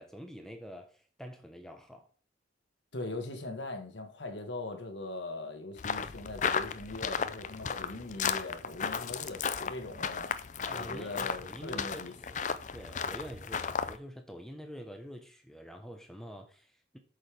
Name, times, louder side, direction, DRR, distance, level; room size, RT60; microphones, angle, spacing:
voice 1, 0.0-2.1 10.7-12.4 12.7-17.0, equal, 5° left, 1.0 m, -46 dB
voice 2, 2.9-12.1, left 2 dB, 75° left, 1.6 m, -41 dB
sound 1, 5.8-14.0, left 6 dB, 40° left, 0.5 m, -35 dB
8.2 x 6.6 x 3.5 m
head